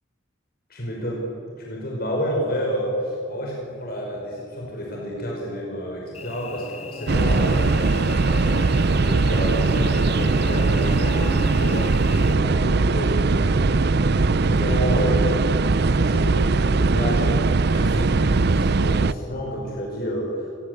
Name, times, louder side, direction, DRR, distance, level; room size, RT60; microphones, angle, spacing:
voice 1, 0.7-1.3 1.6-7.7 8.1-13.7 14.1-20.5, equal, 50° left, -2 dB, 5.5 m, -30 dB
Cricket / Buzz, 6.1-12.3, left 3 dB, 30° left, 1.0 m, -37 dB
sound 1, 7.1-19.1, right 3 dB, 55° right, 0.6 m, -20 dB
26.0 x 22.0 x 8.2 m, 2.6 s
head